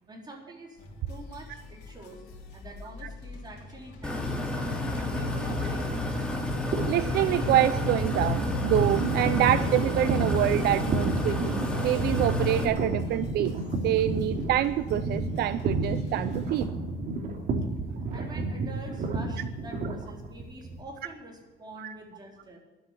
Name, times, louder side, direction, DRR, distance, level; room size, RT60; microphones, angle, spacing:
voice 1, 0.1-2.2 2.5-4.5 4.8-6.3 18.1-22.6, right 2 dB, 25° right, 0 dB, 4.3 m, -46 dB
sound 1, 0.8-16.7, left 3 dB, 85° left, 2.9 m, -46 dB
sound 2, 4.0-12.7, left 2 dB, 5° left, 2.7 m, -30 dB
sound 3, 6.7-20.8, right 3 dB, 55° right, 3.1 m, -31 dB
voice 2, 6.9-13.5 13.8-16.7 21.8-21.9, right 13 dB, 70° right, 13 dB, 0.6 m, -26 dB
12.0 x 8.2 x 9.9 m, 1.3 s
cardioid pair, 110°, 17 cm